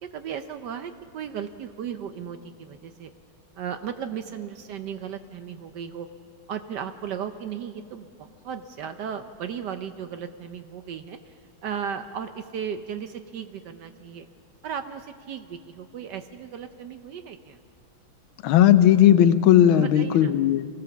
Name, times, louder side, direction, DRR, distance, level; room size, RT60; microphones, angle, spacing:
voice 1, 0.0-3.1 3.6-6.1 6.5-11.4 11.6-14.3 14.6-17.6 19.8-20.4, right 8 dB, 65° right, 9 dB, 1.1 m, -35 dB
voice 2, 18.4-20.7, left 11 dB, 75° left, 13 dB, 1.4 m, -17 dB
23.5 x 15.5 x 7.1 m, 2.4 s
omnidirectional pair, 2.3 m